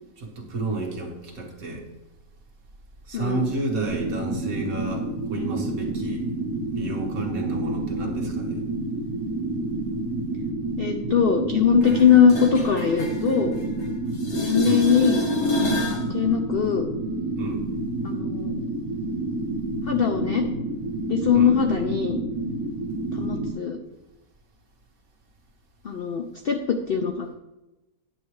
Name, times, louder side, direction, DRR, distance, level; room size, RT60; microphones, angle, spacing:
voice 1, 0.2-1.8 3.1-6.3 6.8-8.6 14.7-14.8 17.4-17.6 21.3-21.5, right 2 dB, 60° right, 0 dB, 1.8 m, -31 dB
voice 2, 3.1-3.5 10.8-13.5 14.4-15.2 15.8-16.9 18.0-18.5 19.8-20.5 21.1-22.2 23.1-23.8 25.8-27.3, left 7 dB, 70° left, 5 dB, 0.5 m, -21 dB
sound 1, 3.8-23.5, right 2 dB, 75° right, 1.9 m, -29 dB
sound 2, 11.8-13.9 14.1-16.1 21.8-21.9, left 1 dB, 45° left, 1.5 m, -28 dB
9.9 x 7.2 x 3.2 m, 0.98 s
omnidirectional pair, 1.7 m